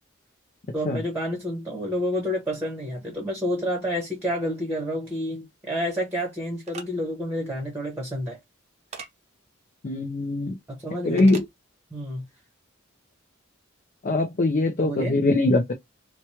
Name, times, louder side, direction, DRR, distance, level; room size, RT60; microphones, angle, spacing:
voice 1, 0.7-8.4 10.7-11.3 11.9-12.2 14.8-15.2, equal, 10° right, 1.0 m, -29 dB
sound 1, 6.6-6.9 8.9-9.1 11.2-11.5, right 5 dB, 35° right, 0.7 m, -38 dB
voice 2, 9.8-10.6 11.1-11.4 14.0-15.7, left 2 dB, 40° left, 0.5 m, -22 dB
3.0 x 2.2 x 2.8 m
head